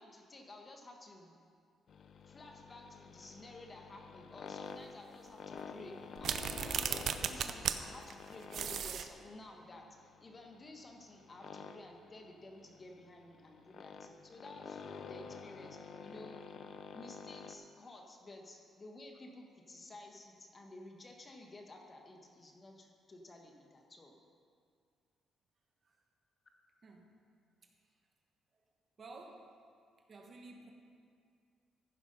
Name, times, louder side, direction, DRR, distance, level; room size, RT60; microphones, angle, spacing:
voice 1, 0.0-1.4 2.3-9.9 10.2-16.4 16.9-24.2, left 2 dB, 35° left, 2 dB, 1.4 m, -53 dB
sound 1, 1.9-17.6, left 6 dB, 60° left, 0.6 m, -50 dB
sound 2, 6.2-7.8 8.1-8.2 8.5-9.1, right 8 dB, 65° right, 0.6 m, -35 dB
voice 2, 29.0-29.5 30.1-30.7, right 3 dB, 40° right, 2 dB, 1.4 m, -52 dB
14.5 x 6.1 x 5.4 m, 2.2 s
cardioid pair, 90°, 0 cm